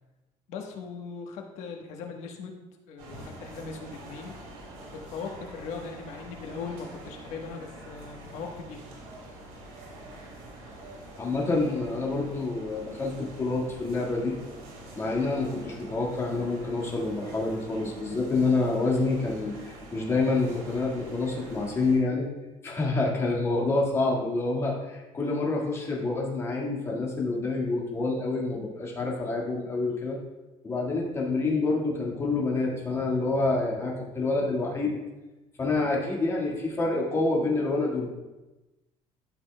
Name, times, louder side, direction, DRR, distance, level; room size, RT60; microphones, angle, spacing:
voice 1, 0.5-2.6 2.9-4.3 4.9-8.8, left 5 dB, 65° left, 3 dB, 1.2 m, -39 dB
sound 1, 3.0-22.0, right 1 dB, 80° right, 2.4 m, -45 dB
voice 2, 11.2-14.3 15.0-22.3 22.6-30.2 30.6-35.0 35.6-38.1, left 3 dB, 20° left, -3 dB, 1.7 m, -27 dB
12.0 x 5.9 x 2.2 m, 1.1 s
cardioid pair, 140°, 12 cm